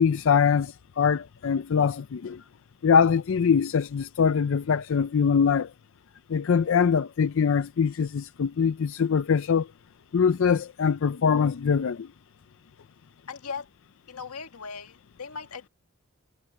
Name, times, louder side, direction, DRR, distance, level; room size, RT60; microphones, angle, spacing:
voice 1, 0.0-2.4 2.8-5.7 6.3-9.7 10.1-12.1, left 6 dB, 60° left, 0.4 m, -23 dB
voice 2, 13.3-13.7 14.1-15.7, left 5 dB, 85° left, 1.8 m, -38 dB
head